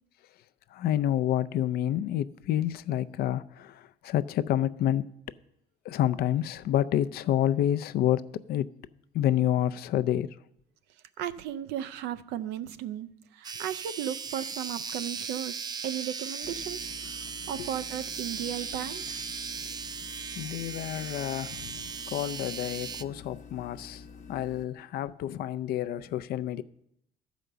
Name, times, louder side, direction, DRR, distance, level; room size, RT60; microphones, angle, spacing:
voice 1, 0.7-5.1 5.9-8.7 9.1-10.3 17.6-17.7 20.4-24.0 24.3-26.6, left 11 dB, 65° left, 0.5 m, -28 dB
voice 2, 11.2-16.8 17.0-17.2 17.5-19.2, right 10 dB, 90° right, 0.5 m, -35 dB
sound 1, 13.4-23.0, right 5 dB, 25° right, 0.4 m, -37 dB
sound 2, 16.4-24.7, left 5 dB, 45° left, 0.8 m, -48 dB
12.5 x 5.1 x 6.8 m
cardioid pair, 110°, 17 cm